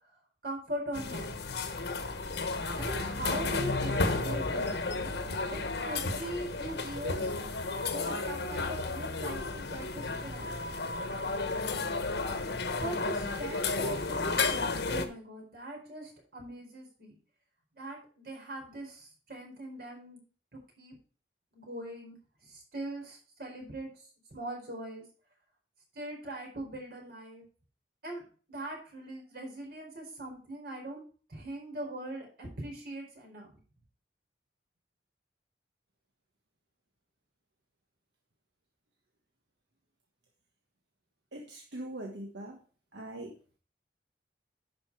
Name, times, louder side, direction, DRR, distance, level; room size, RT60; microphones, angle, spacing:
voice 1, 0.4-1.3 2.8-5.1 5.5-7.3 7.8-10.5 12.8-17.2 17.8-20.2 20.8-20.9 21.5-22.1 22.5-23.9 24.3-25.0 25.9-27.4 28.0-28.2 28.5-31.0 31.3-33.5, right 1 dB, 60° right, 0 dB, 4.5 m, -41 dB
sound 1, 0.9-15.1, left 3 dB, 70° left, 1.1 m, -32 dB
voice 2, 41.3-42.6 42.9-43.3, right 1 dB, 85° right, 1 dB, 1.4 m, -41 dB
11.0 x 5.3 x 4.7 m, 0.38 s
head